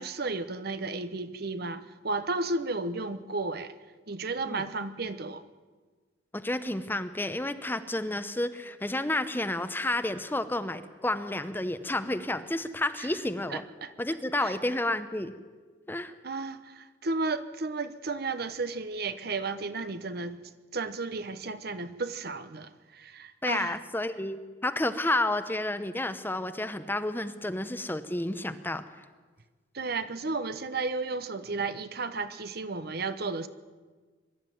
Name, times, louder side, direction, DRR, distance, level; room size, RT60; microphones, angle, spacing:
voice 1, 0.0-3.7 4.1-5.4 13.0-13.1 13.5-13.9 14.4-14.5 16.2-20.4 20.7-23.8 29.7-33.5, right 3 dB, 55° right, 1.0 m, -33 dB
voice 2, 6.3-13.6 14.0-15.3 15.9-16.1 23.4-28.8, left 1 dB, 10° left, 0.8 m, -30 dB
23.0 x 12.5 x 9.3 m
head